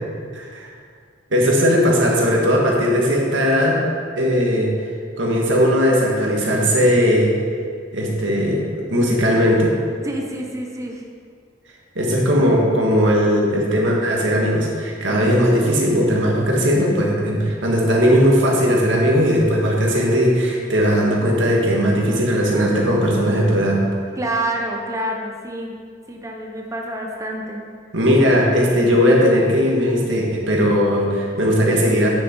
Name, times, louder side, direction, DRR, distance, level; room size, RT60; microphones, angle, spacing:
voice 1, 0.3-0.7 1.3-3.8 4.2-4.7 5.2-7.3 7.9-9.7 12.0-23.8 27.9-32.1, equal, 85° right, -2 dB, 1.9 m, -18 dB
voice 2, 10.0-11.0 24.2-25.7 26.1-27.6, right 1 dB, 15° right, 0 dB, 0.8 m, -27 dB
9.3 x 6.9 x 4.7 m, 2.1 s
head